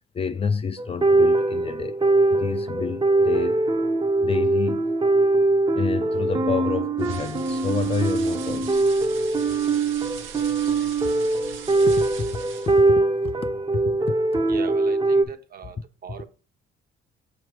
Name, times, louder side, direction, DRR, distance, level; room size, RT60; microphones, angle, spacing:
voice 1, 0.1-2.0 2.3-3.7 4.2-4.9 5.8-8.8 11.9-12.4 12.7-14.0, left 6 dB, 30° left, 0.4 m, -29 dB
sound 1, 0.8-15.2, right 2 dB, 25° right, 0.6 m, -22 dB
sound 2, 7.0-12.9, right 7 dB, 80° right, 0.8 m, -41 dB
voice 2, 14.5-16.3, right 7 dB, 50° right, 0.8 m, -38 dB
6.5 x 3.2 x 4.8 m
cardioid pair, 90°, 20 cm